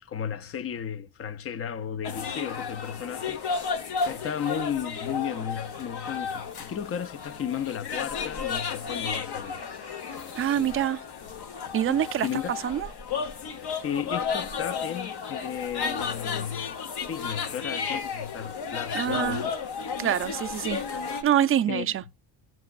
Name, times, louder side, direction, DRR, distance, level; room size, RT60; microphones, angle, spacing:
voice 1, 0.0-3.4 4.0-9.6 10.6-10.8 11.9-12.5 13.8-16.7 17.0-19.5 21.7-21.9, left 8 dB, 35° left, 0.5 m, -34 dB
sound 1, 2.0-21.2, left 5 dB, 60° left, 1.0 m, -33 dB
voice 2, 10.3-11.0 11.7-12.3 12.6-12.9 18.9-19.4 20.0-20.8 21.2-22.0, right 10 dB, 30° right, 0.4 m, -25 dB
17.5 x 6.0 x 2.3 m
cardioid pair, 115°, 45 cm